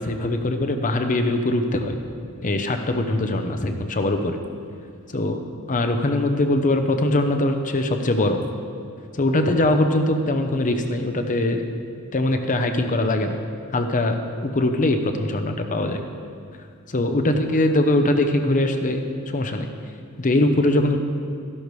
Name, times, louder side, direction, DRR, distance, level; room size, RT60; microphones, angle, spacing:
voice 1, 0.0-2.0 2.4-4.4 5.1-5.4 5.7-8.4 9.1-11.6 12.1-13.4 13.7-16.0 16.9-19.0 19.3-19.7 20.2-21.0, left 1 dB, 35° left, 6 dB, 0.7 m, -22 dB
13.5 x 12.0 x 3.2 m, 2.4 s
head